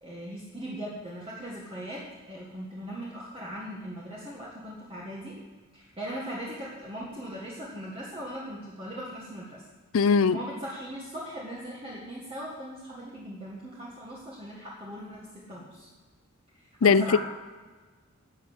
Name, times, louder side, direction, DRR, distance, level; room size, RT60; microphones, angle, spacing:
voice 1, 0.0-2.0 2.3-5.3 5.7-9.6 10.2-15.9 16.8-17.2, equal, 25° right, -6 dB, 1.8 m, -39 dB
voice 2, 9.9-10.4 16.8-17.2, left 5 dB, 80° left, 16 dB, 0.5 m, -20 dB
12.0 x 7.7 x 6.3 m, 1.3 s
head